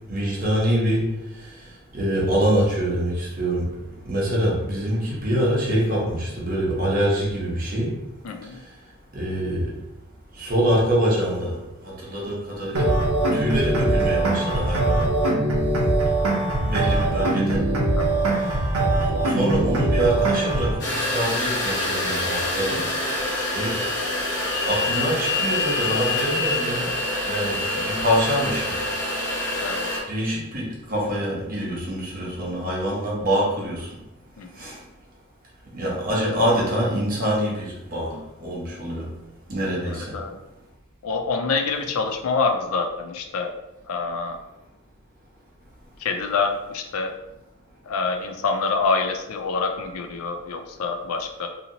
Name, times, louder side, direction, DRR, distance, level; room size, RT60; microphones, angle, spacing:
voice 1, 0.1-1.1 1.4-1.5 1.9-3.7 4.0-7.9 9.1-9.8 10.4-11.6 11.8-13.0 13.3-15.1 16.6-17.6 18.4-18.5 19.2-22.9 23.5-23.8 24.7-26.9 27.3-28.8 30.1-33.9 34.6-34.8 35.7-39.1 39.5-40.1, equal, 40° right, -5 dB, 0.9 m, -25 dB
voice 2, 8.2-8.6 18.0-18.3 29.6-29.9 34.4-34.6 39.9-40.4 41.0-43.5 43.9-44.4 46.0-47.1 47.9-51.5, left 4 dB, 75° left, 4 dB, 0.4 m, -26 dB
sound 1, 12.7-20.7, right 2 dB, 80° right, 0.7 m, -22 dB
sound 2, 20.8-30.0, left 2 dB, 50° left, 1.0 m, -26 dB
2.8 x 2.8 x 2.7 m, 0.93 s
head